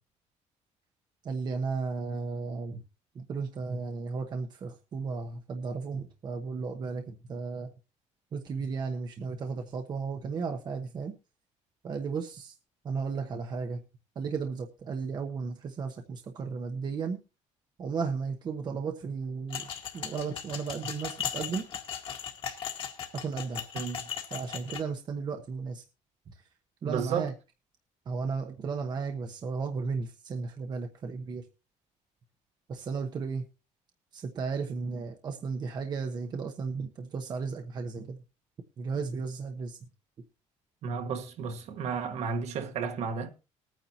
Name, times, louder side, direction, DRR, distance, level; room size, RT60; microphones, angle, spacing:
voice 1, 1.2-2.8 3.1-7.7 8.3-11.1 11.8-12.5 12.8-13.8 14.1-17.2 17.8-21.6 23.1-23.7 24.3-25.8 26.3-26.4 26.8-27.3 28.1-31.4 32.7-33.5 34.1-38.2 38.8-39.8, right 5 dB, 35° right, 1.0 m, -34 dB
sound 1, 19.5-24.8, left 8 dB, 45° left, 1.8 m, -37 dB
voice 2, 26.8-27.3 40.8-43.3, right 6 dB, 60° right, 1.5 m, -32 dB
20.5 x 9.3 x 2.9 m
cardioid pair, 170°, 13 cm